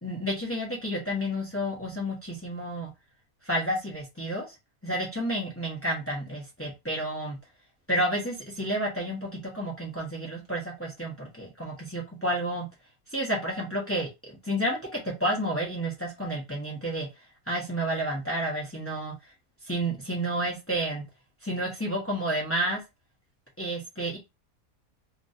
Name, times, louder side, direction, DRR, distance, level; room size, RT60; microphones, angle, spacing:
voice 1, 0.0-2.9 3.5-4.5 4.8-7.4 7.9-12.7 13.1-14.1 14.4-17.1 17.5-19.1 19.7-21.0 21.4-22.8 23.6-24.2, right 1 dB, 10° left, -2 dB, 0.7 m, -30 dB
2.9 x 2.6 x 2.6 m, 0.23 s
omnidirectional pair, 1.5 m